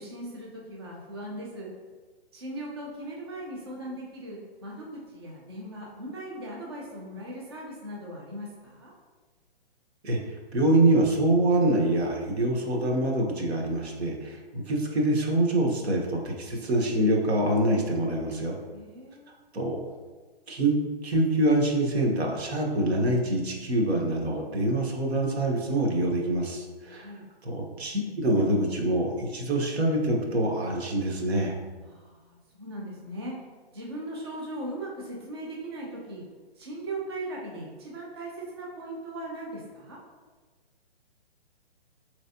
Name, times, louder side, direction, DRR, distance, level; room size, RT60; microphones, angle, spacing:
voice 1, 0.0-1.7 2.3-8.9 18.7-19.4 26.9-27.3 31.8-33.4 33.7-36.2 36.6-40.0, right 1 dB, 25° right, -3 dB, 0.4 m, -39 dB
voice 2, 10.5-18.5 19.5-19.8 20.5-20.8 21.0-27.1 27.4-31.6, right 1 dB, 85° right, 0 dB, 1.1 m, -25 dB
4.3 x 3.2 x 2.7 m, 1.4 s
hypercardioid pair, 170°, 31 cm